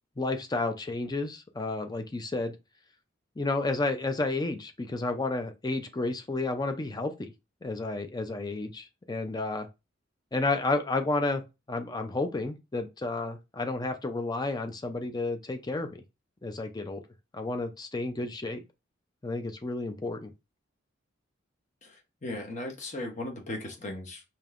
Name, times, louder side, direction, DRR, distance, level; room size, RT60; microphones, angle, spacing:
voice 1, 0.2-2.6 3.4-7.3 7.6-9.7 10.3-16.0 16.4-17.0 17.3-18.6 19.2-20.3, left 2 dB, 20° left, 0.5 m, -31 dB
voice 2, 21.8-24.3, left 1 dB, 40° left, 1.0 m, -37 dB
5.1 x 2.8 x 2.5 m
head